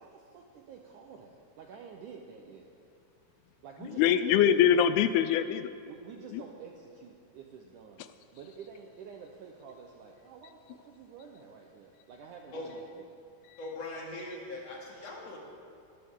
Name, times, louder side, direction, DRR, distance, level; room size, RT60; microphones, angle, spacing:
voice 1, 0.0-2.7 3.6-4.3 4.6-4.8 5.9-13.2, right 6 dB, 75° right, 2 dB, 1.9 m, -49 dB
voice 2, 3.8-5.7 6.3-6.4 13.5-13.6, left 9 dB, 85° left, 12 dB, 2.4 m, -24 dB
voice 3, 13.6-15.4, left 2 dB, 45° left, -2 dB, 2.9 m, -40 dB
21.0 x 14.5 x 3.7 m, 2.6 s
omnidirectional pair, 4.6 m